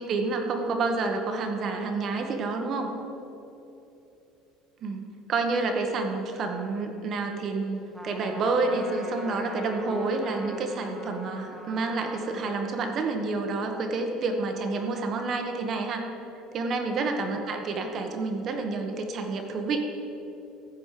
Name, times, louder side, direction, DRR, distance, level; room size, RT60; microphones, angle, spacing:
voice 1, 0.0-2.9 4.8-5.0 5.3-16.0 16.5-19.8, right 3 dB, 40° right, 4 dB, 1.3 m, -29 dB
Trumpet, 7.9-12.6, equal, ahead, 1.4 m, -42 dB
14.5 x 5.1 x 7.6 m, 2.9 s
cardioid pair, 135°, 0 cm